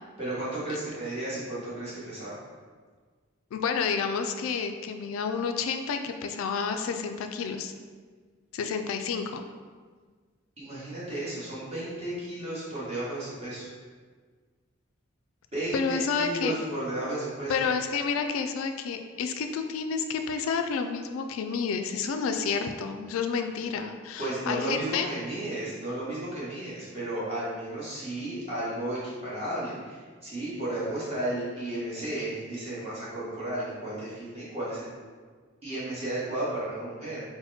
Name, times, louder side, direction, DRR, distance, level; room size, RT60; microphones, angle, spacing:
voice 1, 0.2-2.4 10.6-13.7 15.5-17.6 24.2-34.9 35.6-37.2, right 1 dB, 30° right, -9 dB, 1.3 m, -33 dB
voice 2, 3.5-7.7 8.5-9.4 15.7-16.5 17.5-25.1, left 5 dB, 80° left, 8 dB, 0.3 m, -30 dB
4.1 x 2.1 x 4.1 m, 1.5 s
head